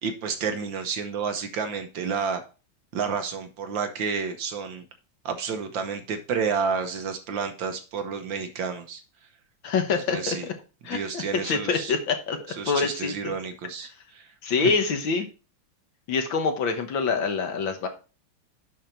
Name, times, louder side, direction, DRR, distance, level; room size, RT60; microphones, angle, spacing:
voice 1, 0.0-2.4 2.9-4.8 5.2-9.0 9.9-10.5 10.9-11.9 12.6-14.3, right 5 dB, 65° right, 7 dB, 1.6 m, -30 dB
voice 2, 9.6-10.5 10.8-12.4 12.6-13.3 14.4-15.3 16.1-17.9, left 5 dB, 65° left, 6 dB, 1.8 m, -26 dB
10.5 x 4.3 x 4.4 m, 0.33 s
omnidirectional pair, 2.4 m